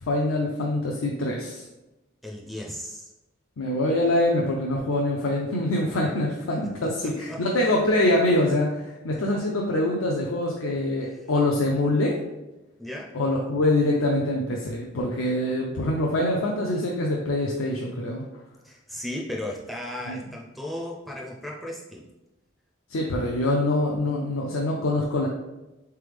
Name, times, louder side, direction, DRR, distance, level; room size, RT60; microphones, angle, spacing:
voice 1, 0.0-1.6 3.6-12.2 13.1-18.2 20.1-20.2 22.9-25.3, left 1 dB, 85° left, -2 dB, 0.5 m, -24 dB
voice 2, 2.2-3.1 6.8-7.4 12.8-13.1 18.6-22.0, left 1 dB, ahead, -3 dB, 0.4 m, -35 dB
3.9 x 3.4 x 3.3 m, 1.0 s
head